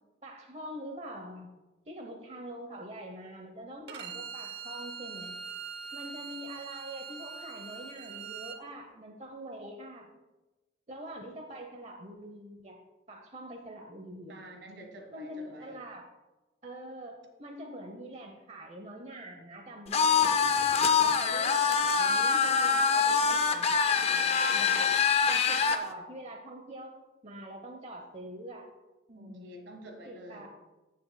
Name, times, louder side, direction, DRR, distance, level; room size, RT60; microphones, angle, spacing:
voice 1, 0.2-1.5 1.9-5.3 5.9-10.1 10.9-12.8 13.1-14.3 15.1-16.1 16.6-20.4 21.0-24.9 25.3-26.9 27.2-28.6 29.1-29.5 30.0-30.5, right 1 dB, 35° right, 2 dB, 0.8 m, -44 dB
Bowed string instrument, 3.9-8.6, right 6 dB, 60° right, 0.8 m, -42 dB
voice 2, 14.3-15.8 29.1-30.5, right 1 dB, 75° right, 2 dB, 1.6 m, -48 dB
sound 1, 19.9-25.8, left 6 dB, 35° left, 0.4 m, -25 dB
16.0 x 6.6 x 2.2 m, 1.1 s
head